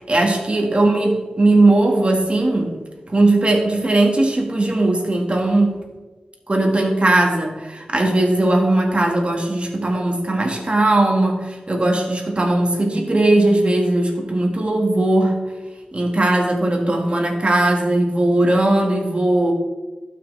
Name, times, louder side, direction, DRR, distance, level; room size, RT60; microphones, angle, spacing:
voice 1, 0.0-2.7 3.1-5.8 6.5-15.4 15.9-19.5, right 2 dB, 45° right, 2 dB, 1.8 m, -18 dB
16.0 x 5.9 x 3.3 m, 1.3 s
wide cardioid pair, 55°, 3 cm